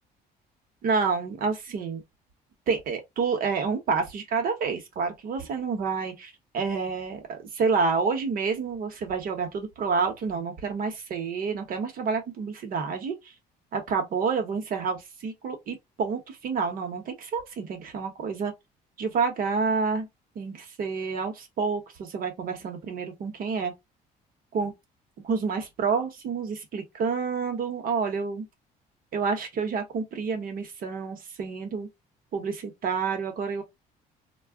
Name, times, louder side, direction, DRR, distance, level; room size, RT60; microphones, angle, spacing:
voice 1, 0.8-2.0 2.7-13.3 13.7-18.5 19.0-20.1 20.3-23.7 24.5-24.7 25.2-28.5 29.1-31.9 32.3-33.6, right 5 dB, 55° right, 1.0 m, -29 dB
2.3 x 2.1 x 3.5 m
cardioid pair, 110°, 17 cm